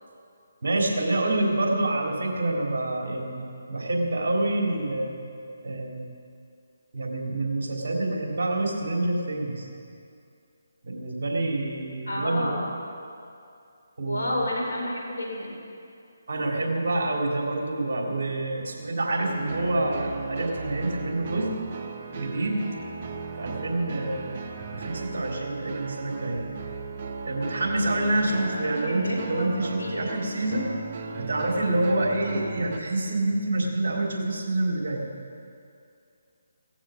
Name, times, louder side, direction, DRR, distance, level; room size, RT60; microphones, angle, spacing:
voice 1, 0.6-5.2 5.6-6.1 6.9-9.7 10.8-12.5 14.0-14.3 16.3-21.5 22.1-22.7 23.4-24.3 24.7-26.4 27.2-30.7 31.2-35.0, right 2 dB, 60° right, 0 dB, 3.6 m, -27 dB
voice 2, 12.1-12.6 14.0-15.5 28.6-29.5 29.8-30.0, left 1 dB, 80° left, -1 dB, 4.8 m, -30 dB
sound 1, 19.2-32.8, right 4 dB, 40° right, 1.1 m, -36 dB
17.0 x 15.0 x 5.2 m, 2.5 s
figure-of-eight pair, 150°, 0 cm